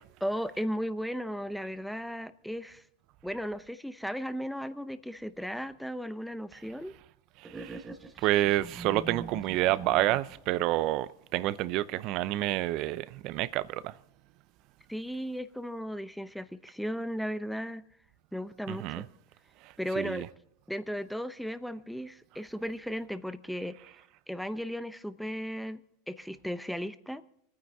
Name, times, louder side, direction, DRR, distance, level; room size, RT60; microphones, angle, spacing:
voice 1, 0.2-2.8 3.2-6.9 14.9-17.8 18.3-19.1 19.8-20.3 20.7-23.8 24.3-25.8 26.1-27.2, equal, ahead, 0.7 m, -35 dB
sound 1, 7.4-10.5, right 3 dB, 15° right, 1.1 m, -43 dB
voice 2, 7.4-7.8 8.2-13.9 18.7-19.1 19.6-20.3, right 16 dB, 55° right, 0.6 m, -29 dB
24.5 x 9.4 x 3.6 m
hypercardioid pair, 110°, 0 cm